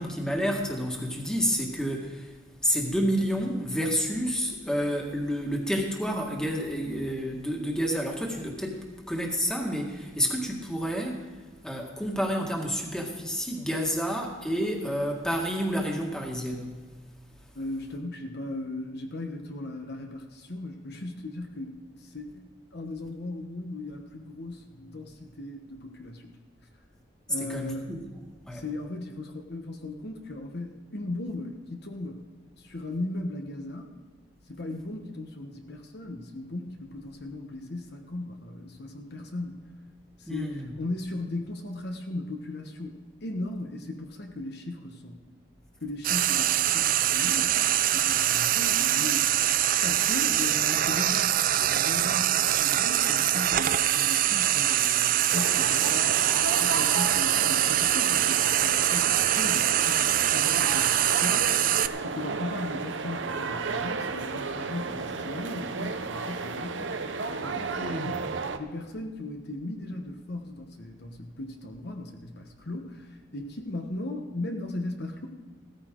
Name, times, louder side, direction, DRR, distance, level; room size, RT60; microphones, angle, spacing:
voice 1, 0.0-2.3 2.6-11.2 11.6-16.7 27.5-28.0 28.5-28.6 40.3-40.6 67.8-68.1, equal, 5° left, 0 dB, 1.8 m, -29 dB
voice 2, 17.5-22.5 22.7-26.4 27.3-27.9 28.5-32.3 32.6-34.0 34.5-39.7 40.2-45.2 45.8-56.2 56.6-75.3, left 2 dB, 55° left, 3 dB, 1.2 m, -37 dB
Frying (food), 46.0-61.9, right 12 dB, 45° right, 0.4 m, -24 dB
sound 1, 55.3-68.6, right 4 dB, 70° right, 0.8 m, -33 dB
16.5 x 14.0 x 3.8 m, 1.4 s
head